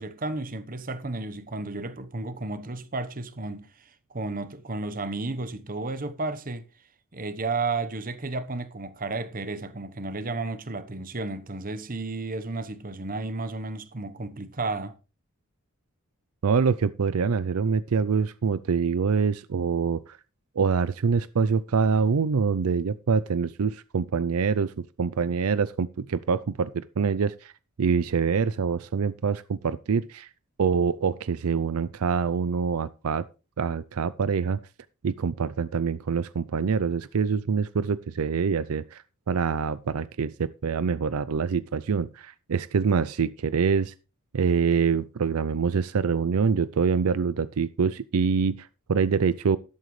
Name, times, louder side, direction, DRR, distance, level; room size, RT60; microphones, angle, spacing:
voice 1, 0.0-6.6 7.1-15.0, right 3 dB, 40° right, 1.0 m, -33 dB
voice 2, 16.4-20.2 20.6-27.5 27.8-30.3 30.6-33.2 33.6-34.6 35.0-43.9 44.3-49.6, right 5 dB, 75° right, 0.5 m, -25 dB
12.5 x 11.5 x 3.2 m
head